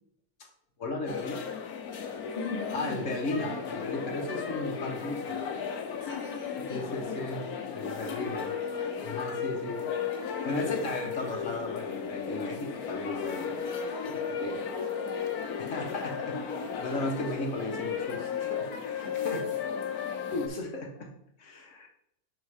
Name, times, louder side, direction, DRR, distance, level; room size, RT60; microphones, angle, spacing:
voice 1, 0.8-1.5 2.7-5.4 6.7-7.5 7.7-8.5 9.0-9.8 10.4-13.6 13.9-14.7 15.6-19.4 20.3-21.1 21.4-21.9, left 2 dB, 60° left, 3 dB, 1.4 m, -35 dB
sound 1, 1.1-20.5, left 7 dB, 85° left, 1.3 m, -35 dB
voice 2, 2.3-3.0 6.0-7.2 7.5-7.6 19.3-19.4, left 3 dB, 30° left, -5 dB, 2.3 m, -38 dB
5.4 x 4.4 x 4.8 m, 0.73 s
omnidirectional pair, 1.5 m